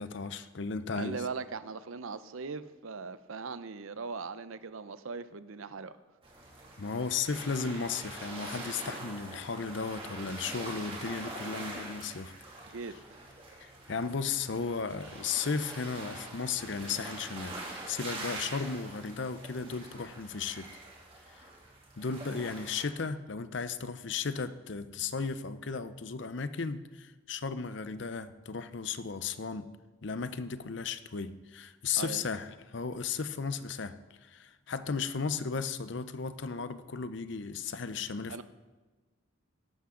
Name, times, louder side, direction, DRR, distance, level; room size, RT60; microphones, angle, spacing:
voice 1, 0.0-1.2 6.8-12.3 13.6-17.5 17.9-20.7 21.3-21.5 22.0-29.7 30.0-38.4, left 5 dB, 60° left, 12 dB, 0.6 m, -35 dB
voice 2, 1.0-5.9 12.6-13.0 32.0-32.3 38.3-38.4, right 4 dB, 85° right, 13 dB, 0.6 m, -39 dB
sound 1, 6.2-22.9, right 2 dB, 25° right, 2.5 m, -44 dB
14.0 x 11.5 x 3.8 m, 1.3 s
head